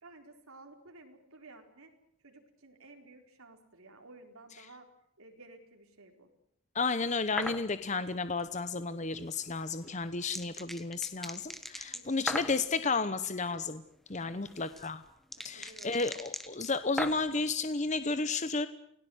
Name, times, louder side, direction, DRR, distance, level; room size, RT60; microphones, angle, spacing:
voice 1, 0.0-1.9 2.2-4.9 5.2-6.3 11.9-12.6 14.2-14.5 15.4-16.1, right 2 dB, 85° right, 4 dB, 4.3 m, -54 dB
voice 2, 6.7-13.8 14.1-15.0 15.4-18.7, left 4 dB, 35° left, 12 dB, 0.9 m, -32 dB
sound 1, 7.4-7.6 9.5-12.6 14.2-17.4, equal, ahead, 1.3 m, -39 dB
29.0 x 18.0 x 8.0 m, 0.72 s
head